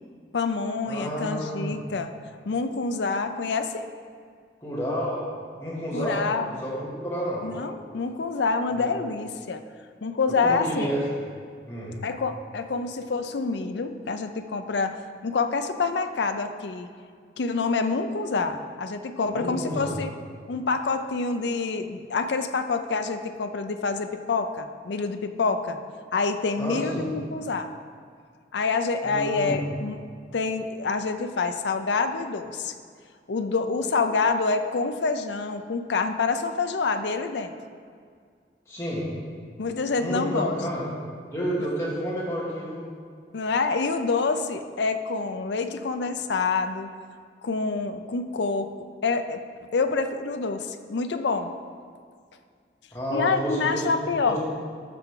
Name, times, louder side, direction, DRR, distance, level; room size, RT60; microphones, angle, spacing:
voice 1, 0.3-2.1 2.5-3.8 5.9-6.6 7.4-9.6 10.0-10.9 12.0-15.0 15.2-16.9 17.4-20.1 20.5-25.8 26.1-27.7 28.5-30.0 30.3-32.7 33.3-37.5 39.6-40.5 43.3-46.9 47.4-49.4 49.7-51.5 53.1-54.4, left 4 dB, 75° left, 8 dB, 0.5 m, -27 dB
voice 2, 0.8-1.7 4.6-5.2 5.6-7.4 8.7-8.8 10.4-11.0 11.7-11.9 19.3-19.9 26.6-27.0 29.0-29.6 38.7-39.1 40.0-40.9 41.3-42.8 52.9-53.8 54.2-54.4, equal, 15° left, -8 dB, 2.5 m, -30 dB
12.5 x 5.8 x 3.8 m, 2.1 s
head